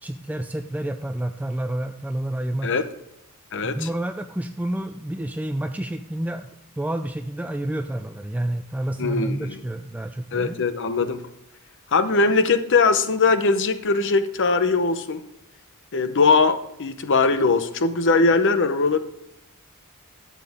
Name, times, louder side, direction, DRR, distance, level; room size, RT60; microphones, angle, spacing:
voice 1, 0.0-2.8 3.6-6.5 6.8-10.6, right 1 dB, 5° right, 7 dB, 0.3 m, -29 dB
voice 2, 3.5-3.9 9.0-9.6 10.3-11.2 11.9-15.2 15.9-19.0, left 4 dB, 55° left, 11 dB, 0.7 m, -20 dB
11.5 x 7.5 x 3.5 m, 0.83 s
head